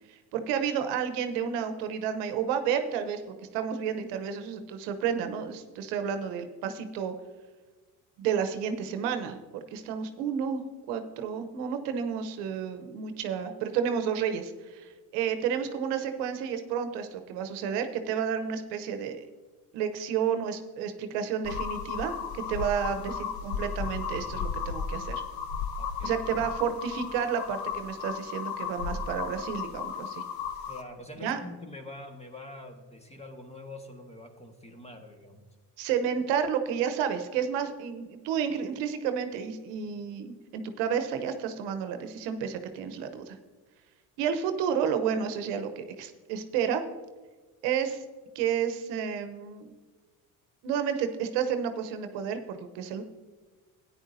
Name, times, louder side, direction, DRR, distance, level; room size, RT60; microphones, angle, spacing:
voice 1, 0.1-7.1 8.2-10.6 10.9-19.2 19.7-25.2 26.0-30.2 31.2-31.4 35.8-43.4 44.2-46.8 47.6-48.0 48.3-49.7 50.6-53.0, right 7 dB, 75° right, 8 dB, 1.0 m, -31 dB
sound 1, 21.4-30.8, left 6 dB, 55° left, 1.2 m, -34 dB
voice 2, 25.8-26.2 30.7-35.5, left 2 dB, 15° left, 4 dB, 1.6 m, -45 dB
13.5 x 9.8 x 2.7 m, 1.3 s
supercardioid pair, 75°, 42 cm